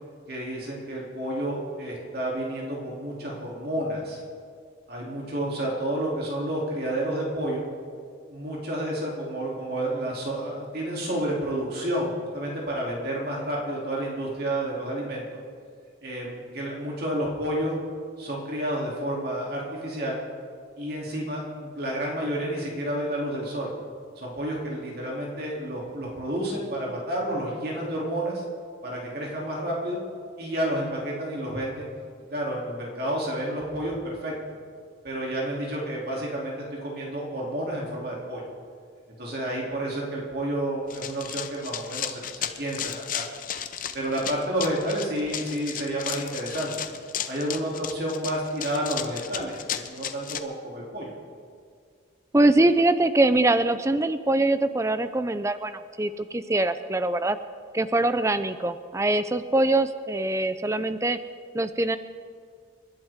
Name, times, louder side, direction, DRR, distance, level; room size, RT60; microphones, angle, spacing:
voice 1, 0.3-4.2 4.9-7.6 8.3-15.2 16.0-17.8 18.2-20.2 20.8-23.7 24.2-28.4 28.8-30.0 30.4-31.9 32.3-34.3 35.0-38.4 39.2-43.3 43.9-46.7 47.3-51.1, right 1 dB, 50° right, -3 dB, 2.9 m, -30 dB
Run, 40.9-50.4, left 9 dB, 45° left, 0.7 m, -34 dB
voice 2, 52.3-57.4 57.7-61.2 61.5-62.0, right 2 dB, 15° right, 11 dB, 0.5 m, -23 dB
28.5 x 11.5 x 3.6 m, 2.1 s
head